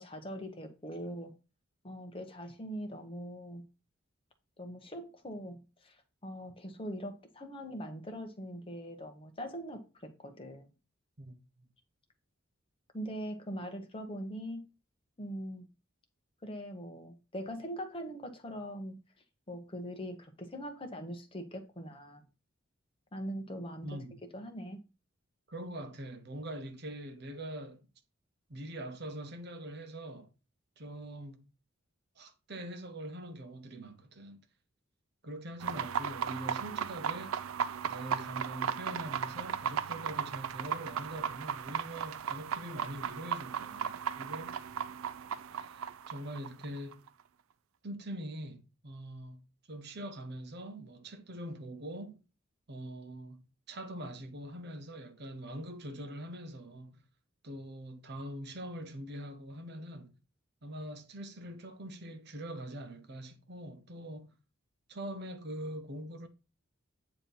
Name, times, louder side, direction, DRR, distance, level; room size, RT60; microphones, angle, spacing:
voice 1, 0.0-1.4 1.8-3.7 4.6-10.7 12.9-14.7 15.2-15.7 16.4-19.0 19.5-22.2 23.1-24.0 24.3-24.8, equal, 25° left, 1.0 m, -42 dB
voice 2, 23.8-24.2 25.5-27.9 28.5-30.3 30.8-31.4 32.2-34.4 35.2-37.4 37.9-44.6 45.5-47.0 47.8-49.4 49.7-52.2 52.7-57.0 57.4-60.2 60.6-64.4 64.9-66.3, right 1 dB, 55° right, 0.9 m, -43 dB
sound 1, 35.6-47.1, right 7 dB, 90° right, 0.4 m, -36 dB
8.9 x 3.0 x 5.4 m
head